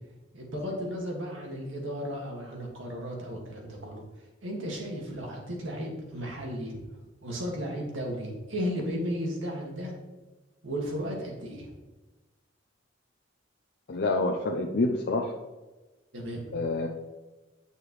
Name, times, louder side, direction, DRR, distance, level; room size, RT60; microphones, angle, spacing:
voice 1, 0.3-4.0 4.4-6.8 7.2-9.9 10.6-11.7 16.1-16.4, equal, 80° right, -1 dB, 2.0 m, -34 dB
voice 2, 13.9-15.3 16.5-16.9, left 2 dB, 55° left, 1 dB, 0.6 m, -27 dB
8.9 x 6.6 x 3.2 m, 1.1 s
head